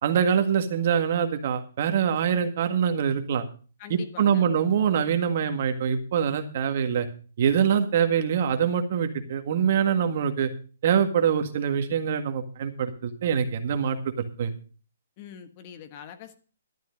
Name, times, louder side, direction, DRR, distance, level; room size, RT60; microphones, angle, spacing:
voice 1, 0.0-3.4 3.9-7.1 7.4-10.5 10.8-14.5, right 8 dB, 50° right, 7 dB, 1.8 m, -24 dB
voice 2, 3.8-4.5 15.2-16.4, left 9 dB, 35° left, 9 dB, 1.5 m, -43 dB
12.5 x 9.1 x 5.3 m, 0.38 s
hypercardioid pair, 150°, 0 cm